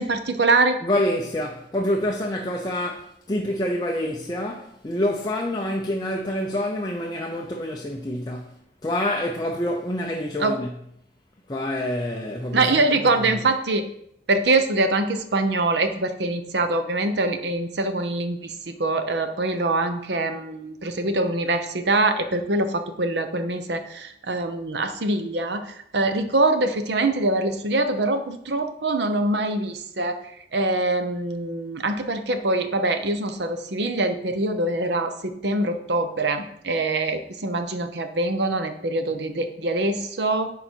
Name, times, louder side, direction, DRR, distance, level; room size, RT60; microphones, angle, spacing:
voice 1, 0.0-0.8 10.4-10.5 12.5-13.9 14.3-30.2 30.5-40.5, right 2 dB, 65° right, 0.8 m, -24 dB
voice 2, 0.8-8.5 8.8-10.7 11.5-13.4, left 1 dB, 20° left, 0.6 m, -27 dB
10.5 x 3.9 x 4.5 m
head